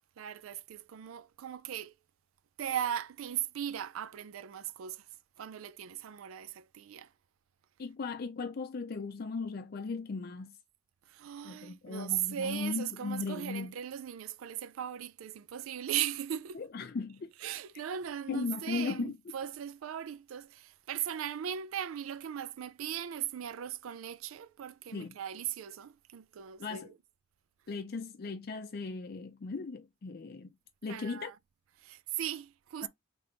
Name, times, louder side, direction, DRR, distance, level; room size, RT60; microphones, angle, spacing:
voice 1, 0.2-1.9 2.6-5.0 5.4-7.1 11.1-16.6 17.4-26.9 30.9-31.3 31.8-32.9, right 10 dB, 85° right, 0.4 m, -38 dB
voice 2, 7.8-10.5 11.4-13.8 16.5-17.3 18.3-19.2 24.9-25.2 26.6-26.9 27.7-30.5 30.8-31.3 32.8-32.9, left 4 dB, 50° left, 0.4 m, -37 dB
3.3 x 3.3 x 3.9 m
head